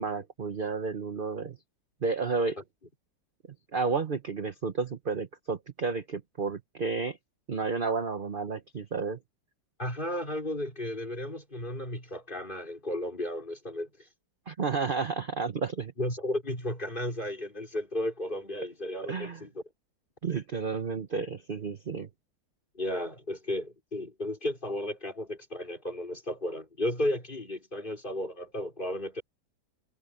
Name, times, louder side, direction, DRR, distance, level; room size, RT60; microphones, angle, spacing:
voice 1, 0.0-1.6 2.0-2.6 3.7-7.2 7.5-9.2 14.5-15.9 19.1-19.4 20.2-22.1, right 4 dB, 40° right, 0.9 m, -31 dB
voice 2, 9.8-13.9 16.0-19.6 22.7-29.2, left 1 dB, 25° left, 4.4 m, -34 dB
omnidirectional pair, 2.0 m